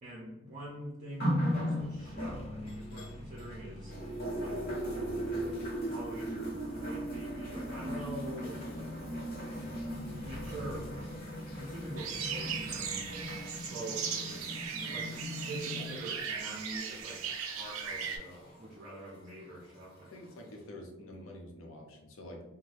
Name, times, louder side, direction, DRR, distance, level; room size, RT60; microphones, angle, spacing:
voice 1, 0.0-3.9 4.4-5.6 5.8-9.0 9.4-9.8 10.2-10.9 11.5-13.0 13.5-20.1, right 1 dB, 40° right, -5 dB, 0.6 m, -45 dB
sound 1, 1.2-3.6 3.9-18.6 19.5-19.6, equal, 45° left, 0.9 m, -38 dB
sound 2, 1.8-13.6, equal, 30° left, 0.4 m, -48 dB
sound 3, 12.0-18.2, right 7 dB, 90° right, 0.5 m, -38 dB
voice 2, 20.1-22.4, left 1 dB, 80° left, 1 dB, 0.7 m, -47 dB
2.7 x 2.2 x 3.3 m, 1.0 s
head